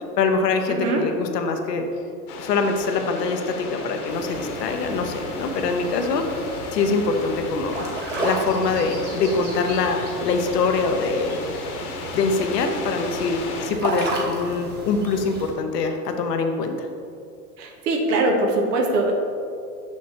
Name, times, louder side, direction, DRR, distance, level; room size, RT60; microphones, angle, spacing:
voice 1, 0.2-1.9 2.4-6.3 6.7-7.8 8.2-11.4 12.1-16.9, left 4 dB, 90° left, 5 dB, 0.8 m, -24 dB
voice 2, 0.7-1.0 17.6-19.1, right 2 dB, 80° right, 1 dB, 1.0 m, -22 dB
sound 1, 2.3-13.7, left 3 dB, 70° left, 1.3 m, -35 dB
sound 2, 4.1-15.5, right 2 dB, 20° right, 1.2 m, -33 dB
6.2 x 6.2 x 2.8 m, 2.5 s
hypercardioid pair, 105°, 47 cm